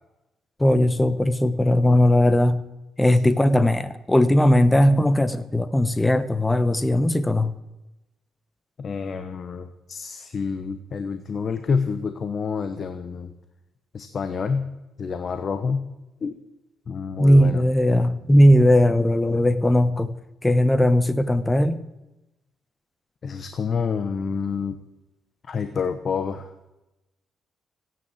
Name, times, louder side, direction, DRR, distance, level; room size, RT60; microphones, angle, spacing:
voice 1, 0.6-2.6 3.0-7.5 17.2-20.1 20.4-21.8, left 1 dB, 10° left, 13 dB, 1.1 m, -18 dB
voice 2, 8.8-13.3 13.9-14.7 15.0-15.9 16.2-16.4 16.9-17.6 23.2-24.8 25.5-26.5, left 5 dB, 45° left, 9 dB, 1.1 m, -28 dB
16.0 x 9.3 x 8.5 m, 0.97 s
cardioid pair, 90°, 0 cm